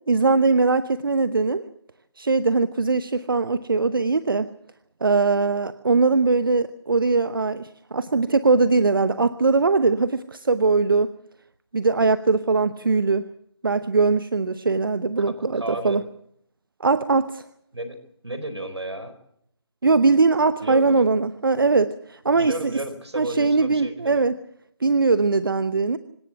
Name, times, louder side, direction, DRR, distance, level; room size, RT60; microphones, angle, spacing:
voice 1, 0.1-1.6 2.2-4.5 5.0-11.1 11.7-13.3 13.6-16.0 16.8-17.4 19.8-22.7 23.2-24.3 24.8-26.0, right 4 dB, 50° right, 14 dB, 0.9 m, -21 dB
voice 2, 15.2-16.0 17.7-18.0 18.2-19.1 20.6-21.1 22.3-24.3, right 1 dB, 70° right, 11 dB, 4.5 m, -33 dB
26.0 x 18.0 x 7.8 m, 0.70 s
figure-of-eight pair, 160°, 14 cm